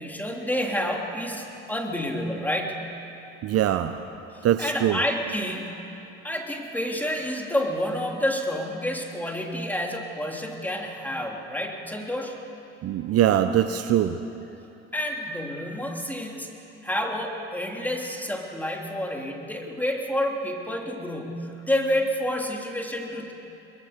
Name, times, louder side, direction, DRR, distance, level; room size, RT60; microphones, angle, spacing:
voice 1, 0.0-2.8 4.3-5.8 6.2-12.4 14.9-16.5 16.8-23.3, left 1 dB, 5° left, 1 dB, 3.5 m, -29 dB
voice 2, 3.4-3.9 4.4-5.0 12.8-14.2, right 11 dB, 50° right, 9 dB, 0.9 m, -22 dB
23.5 x 21.5 x 6.7 m, 3.0 s
supercardioid pair, 80°, 31 cm